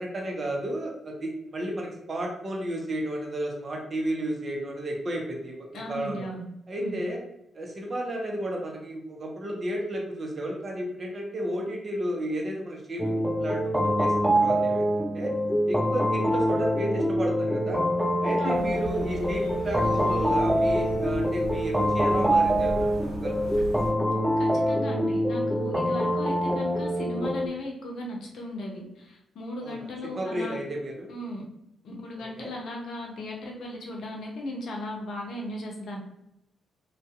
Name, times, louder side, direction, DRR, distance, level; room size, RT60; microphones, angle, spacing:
voice 1, 0.0-6.3 6.7-7.2 7.5-15.3 15.7-17.8 18.2-22.9 23.2-23.5 29.6-31.1 32.4-32.5, right 1 dB, 45° right, 0 dB, 0.8 m, -32 dB
voice 2, 5.7-6.4 6.8-7.0 18.4-18.7 24.4-30.6 31.1-31.4 31.8-36.0, left 1 dB, 65° left, 0 dB, 0.7 m, -37 dB
sound 1, 13.0-27.5, equal, 5° right, 0.4 m, -25 dB
sound 2, 18.5-23.9, left 1 dB, 85° right, 0.9 m, -38 dB
2.6 x 2.3 x 2.4 m, 0.83 s
hypercardioid pair, 40°, 0 cm